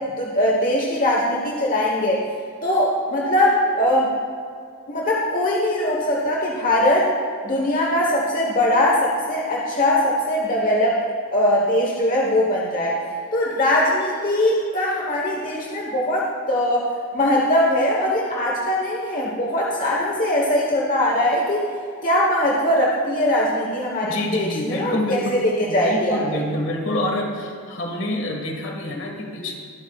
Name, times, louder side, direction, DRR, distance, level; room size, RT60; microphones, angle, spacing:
voice 1, 0.2-2.2 2.6-4.1 4.9-7.1 7.4-11.0 11.3-13.0 13.3-16.9 17.1-21.7 22.0-26.2, left 1 dB, 40° left, -3 dB, 1.1 m, -21 dB
voice 2, 24.1-29.5, left 1 dB, 55° left, 1 dB, 1.6 m, -27 dB
21.5 x 8.6 x 2.4 m, 2.2 s
head